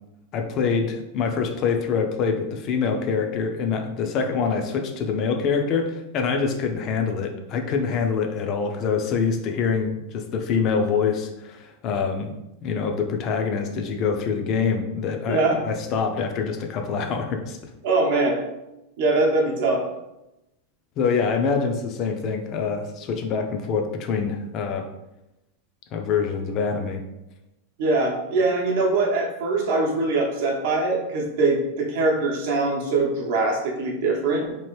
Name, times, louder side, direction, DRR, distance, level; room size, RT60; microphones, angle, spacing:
voice 1, 0.3-12.3 12.6-17.6 21.0-24.9 25.9-27.0, left 5 dB, 35° left, 5 dB, 0.4 m, -25 dB
voice 2, 15.3-15.6 17.8-18.4 19.0-19.9 27.8-34.6, right 3 dB, 60° right, 0 dB, 0.7 m, -22 dB
2.9 x 2.4 x 3.1 m, 0.91 s
supercardioid pair, 160°, 0 cm